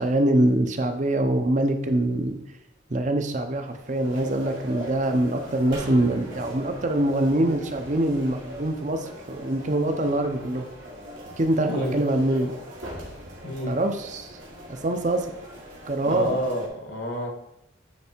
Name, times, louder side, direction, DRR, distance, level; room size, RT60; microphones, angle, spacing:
voice 1, 0.0-2.4 2.9-10.6 11.4-12.5 13.7-14.3 14.7-15.3 15.9-16.4, right 1 dB, 40° right, 6 dB, 0.7 m, -24 dB
sound 1, 3.4-16.7, equal, 85° right, 2.1 m, -41 dB
sound 2, 5.7-9.1 9.4-9.5, right 1 dB, 70° right, 2.0 m, -44 dB
voice 2, 11.6-12.0 13.4-13.8 16.0-17.3, left 1 dB, 70° left, 2 dB, 1.6 m, -29 dB
9.2 x 3.4 x 4.4 m, 0.83 s
head